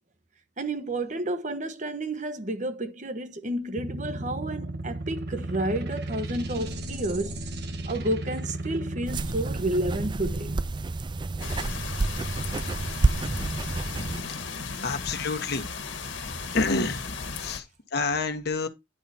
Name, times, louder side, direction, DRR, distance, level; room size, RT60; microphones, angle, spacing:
voice 1, 0.6-7.4 7.9-10.5, right 1 dB, 40° right, 1.1 m, -30 dB
sound 1, 3.8-10.6, right 2 dB, 55° right, 1.5 m, -34 dB
sound 2, 9.1-14.2, right 3 dB, 25° right, 0.4 m, -29 dB
sound 3, 11.4-17.6, left 4 dB, 75° left, 1.6 m, -36 dB
voice 2, 14.8-15.6 16.5-17.1 17.4-18.7, left 3 dB, 55° left, 1.3 m, -28 dB
10.0 x 4.9 x 4.2 m
head